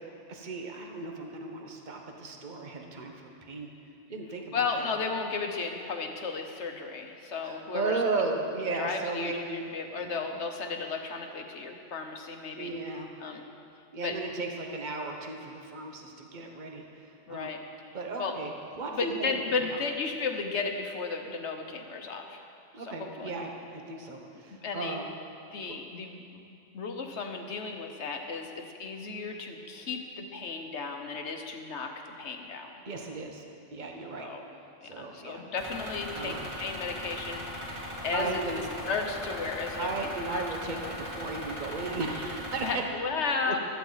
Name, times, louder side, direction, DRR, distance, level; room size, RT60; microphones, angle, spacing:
voice 1, 0.3-3.7 4.1-4.9 7.4-9.6 10.0-10.2 12.5-13.1 13.9-17.5 17.9-18.5 18.8-19.4 22.7-25.0 32.8-33.4 33.7-34.3 34.8-35.4 36.1-36.5 38.1-38.7 39.8-42.8 43.5-43.6, right 3 dB, 45° right, 2 dB, 1.3 m, -35 dB
voice 2, 4.5-8.0 8.7-9.4 9.7-12.7 13.2-13.4 14.0-14.2 17.3-18.3 18.9-22.4 22.8-23.3 24.6-25.0 25.5-26.4 26.7-32.7 34.2-34.4 34.8-37.6 38.0-38.4 38.9-40.5 40.7-40.9 42.6-43.6, left 4 dB, 80° left, 4 dB, 1.4 m, -34 dB
sound 1, 35.6-42.7, equal, 25° right, 2.4 m, -39 dB
15.5 x 13.0 x 4.0 m, 2.5 s
omnidirectional pair, 1.2 m